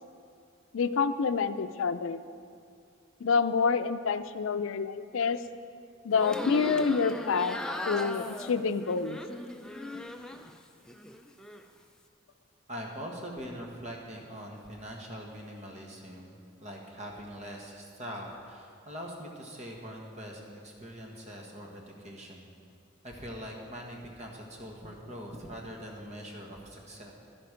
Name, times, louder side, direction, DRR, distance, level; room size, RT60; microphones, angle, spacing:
voice 1, 0.7-2.2 3.2-5.4 6.0-7.6 7.9-9.2, left 5 dB, 90° left, 12 dB, 0.5 m, -27 dB
sound 1, 6.1-10.5 10.9-11.6, left 1 dB, 5° left, 0.4 m, -37 dB
voice 2, 12.7-22.5 23.0-27.1, equal, 35° right, 0 dB, 1.6 m, -43 dB
11.5 x 11.0 x 5.1 m, 2.3 s
head